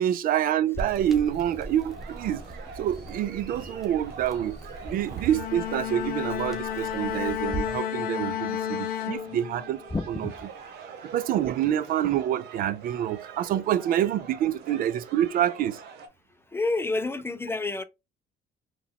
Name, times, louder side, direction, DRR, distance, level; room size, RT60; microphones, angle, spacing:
voice 1, 0.0-2.4 2.8-4.6 4.8-9.8 10.2-10.3 11.1-15.8, right 11 dB, 55° right, 0.4 m, -27 dB
sound 1, 0.7-7.8, right 2 dB, ahead, 1.2 m, -40 dB
sound 2, 0.8-16.1, right 6 dB, 85° right, 0.9 m, -45 dB
Bowed string instrument, 5.2-9.9, left 11 dB, 60° left, 0.6 m, -32 dB
voice 2, 9.9-10.3 16.5-17.8, left 3 dB, 15° left, 0.4 m, -29 dB
3.9 x 3.0 x 2.2 m
cardioid pair, 110°, 17 cm